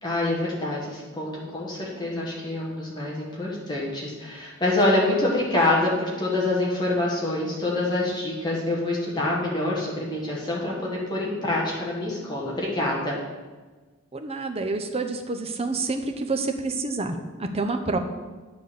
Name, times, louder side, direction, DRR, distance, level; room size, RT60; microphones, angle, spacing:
voice 1, 0.0-13.2, left 2 dB, 20° left, -4 dB, 1.7 m, -26 dB
voice 2, 14.1-18.0, right 3 dB, 30° right, 6 dB, 0.7 m, -28 dB
9.5 x 4.0 x 6.9 m, 1.3 s
head